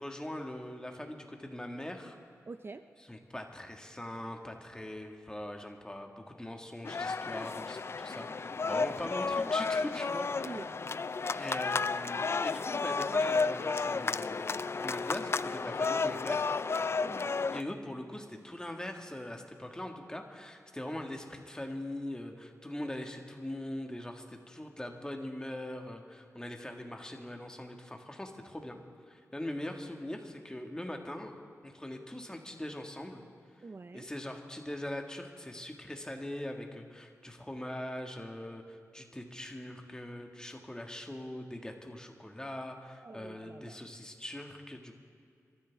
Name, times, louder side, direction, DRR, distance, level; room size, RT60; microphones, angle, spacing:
voice 1, 0.0-2.2 3.0-10.7 11.3-16.5 17.5-28.8 29.1-31.4 31.6-33.2 33.9-45.0, left 1 dB, 10° left, 3 dB, 1.8 m, -41 dB
voice 2, 2.5-2.8 8.7-8.9 10.4-10.7 17.0-17.4 33.6-34.1 43.0-43.9, right 3 dB, 40° right, 9 dB, 0.5 m, -45 dB
sound 1, 6.8-17.6, left 4 dB, 45° left, 0.4 m, -32 dB
27.0 x 14.0 x 3.6 m, 2.3 s
wide cardioid pair, 70°, 6 cm